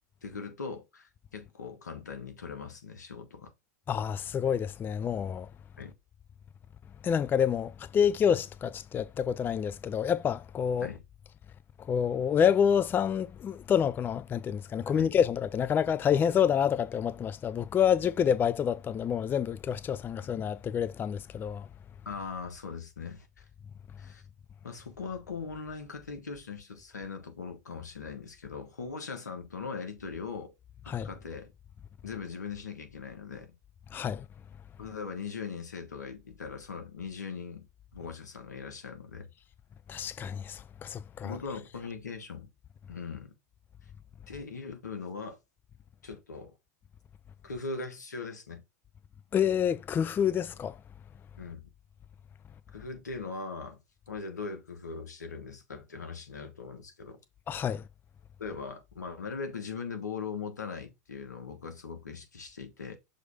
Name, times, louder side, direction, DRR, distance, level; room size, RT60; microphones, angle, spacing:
voice 1, 0.2-3.5 5.8-5.9 10.8-11.0 14.8-15.1 22.0-23.4 24.0-24.2 24.6-30.5 30.8-31.5 32.0-33.5 34.8-39.3 41.2-42.5 42.9-43.3 44.3-45.4 46.0-46.5 47.4-48.6 51.4-51.7 52.7-53.8 54.1-57.2 58.4-63.0, left 5 dB, 90° left, 1.4 m, -40 dB
voice 2, 3.9-5.5 7.0-10.9 11.9-21.7 30.9-31.1 33.9-34.2 39.9-41.4 49.3-50.8 57.5-57.8, left 8 dB, 20° left, 0.4 m, -28 dB
6.4 x 3.2 x 4.8 m
hypercardioid pair, 95°, 9 cm